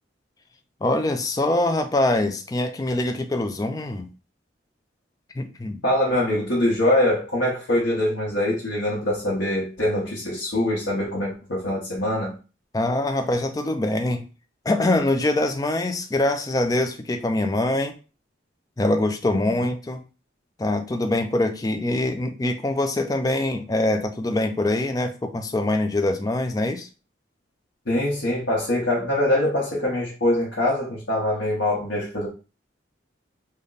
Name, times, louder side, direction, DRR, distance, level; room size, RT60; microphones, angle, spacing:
voice 1, 0.8-4.1 5.4-5.8 12.7-14.3 14.6-18.0 18.8-20.0 20.6-26.9, left 2 dB, 20° left, 0.3 m, -24 dB
voice 2, 5.8-12.3 19.6-19.7 27.9-32.3, left 1 dB, 80° left, 1.0 m, -23 dB
3.3 x 2.1 x 3.8 m
head